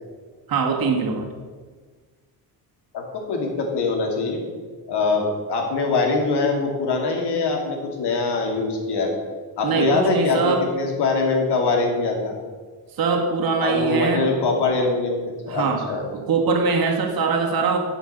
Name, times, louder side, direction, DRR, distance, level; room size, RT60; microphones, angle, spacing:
voice 1, 0.5-1.3 9.6-10.6 13.0-14.3 15.5-15.8 16.1-17.8, right 4 dB, 60° right, 1 dB, 1.8 m, -22 dB
voice 2, 2.9-4.4 4.9-9.1 9.6-12.3 13.6-15.2 15.4-16.0, left 3 dB, 75° left, 1 dB, 2.5 m, -23 dB
9.6 x 5.5 x 7.9 m, 1.5 s
cardioid pair, 135°, 40 cm